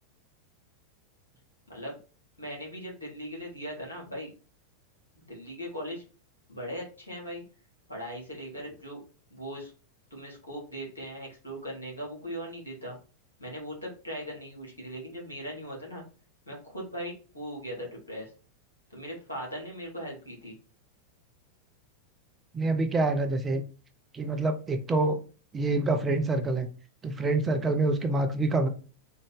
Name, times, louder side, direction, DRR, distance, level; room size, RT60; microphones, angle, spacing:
voice 1, 2.4-4.3 5.1-6.0 6.5-7.4 7.9-9.0 9.3-9.7 10.1-12.9 13.4-16.0 16.4-18.3 18.9-20.5, equal, 80° left, -3 dB, 1.9 m, -39 dB
voice 2, 22.5-23.6 24.1-25.2 25.5-26.7 27.0-28.7, right 2 dB, 20° right, 6 dB, 0.6 m, -26 dB
3.7 x 2.6 x 3.4 m, 0.36 s
figure-of-eight pair, 90°, 0 cm